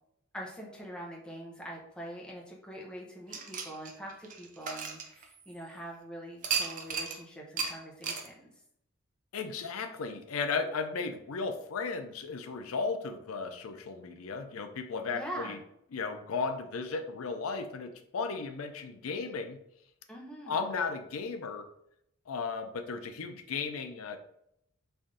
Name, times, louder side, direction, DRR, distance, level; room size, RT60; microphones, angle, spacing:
voice 1, 0.3-8.5 15.1-15.6 20.1-20.6, right 1 dB, 5° left, -2 dB, 0.7 m, -44 dB
sound 1, 3.3-5.7 6.4-7.2 7.6-7.7 8.0-8.3, right 5 dB, 40° right, 0.5 m, -35 dB
voice 2, 9.3-15.6 15.9-19.6 20.5-21.7 22.3-24.2, left 4 dB, 90° left, 7 dB, 0.5 m, -35 dB
3.3 x 2.6 x 3.7 m, 0.76 s
head